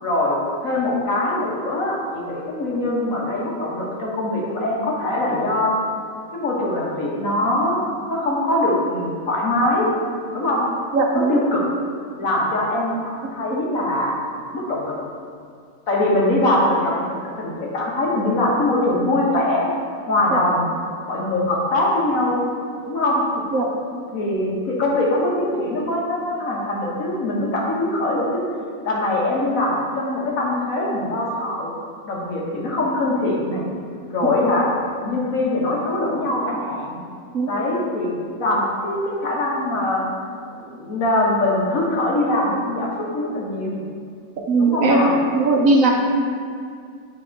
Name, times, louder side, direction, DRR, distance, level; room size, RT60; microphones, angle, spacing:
voice 1, 0.0-5.8 6.3-7.8 8.1-9.9 10.3-10.6 11.1-11.6 12.2-14.2 14.5-15.0 15.9-17.1 17.4-19.7 20.1-20.7 21.0-22.4 22.9-23.2 24.1-28.4 28.8-31.7 32.1-33.6 34.1-34.7 35.0-37.0 37.5-40.1 40.5-43.8 44.6-45.1, left 1 dB, 65° left, -3 dB, 1.6 m, -22 dB
voice 2, 10.9-11.4 20.3-20.4 23.5-23.7 37.3-37.5 44.5-45.9, right 2 dB, 65° right, 1 dB, 1.1 m, -18 dB
9.0 x 3.6 x 4.4 m, 2.3 s
omnidirectional pair, 1.6 m